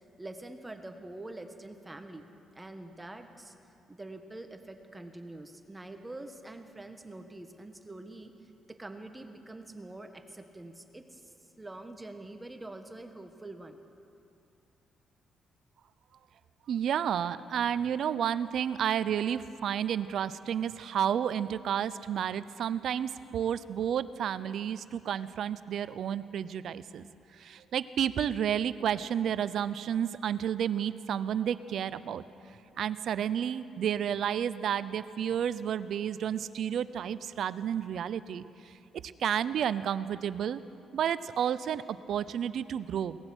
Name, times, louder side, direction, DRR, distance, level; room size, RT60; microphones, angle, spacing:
voice 1, 0.2-2.3 2.5-3.5 3.9-13.8, right 2 dB, 15° right, 7 dB, 1.4 m, -45 dB
voice 2, 16.7-27.1 27.4-32.2 32.8-38.4 39.0-40.6 40.9-43.2, right 9 dB, 65° right, 15 dB, 0.6 m, -31 dB
22.5 x 18.0 x 6.3 m, 2.7 s
cardioid pair, 90°, 0 cm